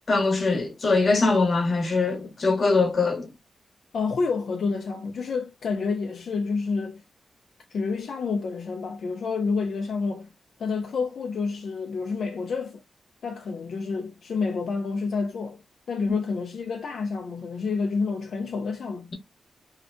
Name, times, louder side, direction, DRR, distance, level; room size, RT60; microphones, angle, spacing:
voice 1, 0.1-3.3, left 3 dB, 45° left, 0.9 m, -22 dB
voice 2, 3.9-7.0 7.7-10.3 10.6-12.8 13.2-15.6 15.9-19.1, left 4 dB, 75° left, 0.4 m, -29 dB
2.7 x 2.1 x 2.4 m
wide cardioid pair, 100°, 0 cm